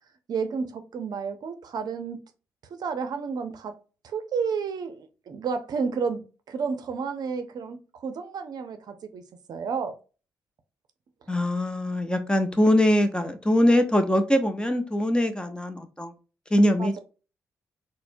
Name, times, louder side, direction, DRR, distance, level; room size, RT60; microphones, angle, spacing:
voice 1, 0.3-2.2 2.7-3.8 4.0-6.2 6.5-9.2 9.5-9.9 16.8-17.0, right 5 dB, 60° right, 0.6 m, -31 dB
voice 2, 11.3-16.1 16.5-16.9, left 1 dB, 10° left, 0.7 m, -22 dB
4.1 x 2.1 x 2.5 m
hypercardioid pair, 45°, 8 cm